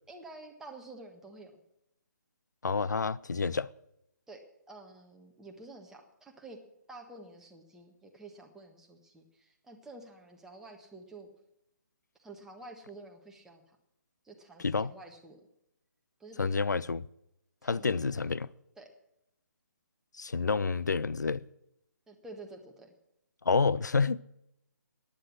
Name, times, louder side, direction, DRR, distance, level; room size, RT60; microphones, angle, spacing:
voice 1, 0.1-1.5 4.3-4.4 4.7-6.6 6.9-11.3 12.2-13.6 14.2-15.4 16.2-16.6 17.6-18.2 18.8-18.9 22.1-22.9, right 2 dB, 5° right, 1.5 m, -49 dB
voice 2, 2.6-3.7 14.6-14.9 16.4-17.0 17.6-18.5 20.2-21.4 23.5-24.2, left 4 dB, 70° left, 0.5 m, -29 dB
15.0 x 10.5 x 6.3 m
figure-of-eight pair, 140°, 10 cm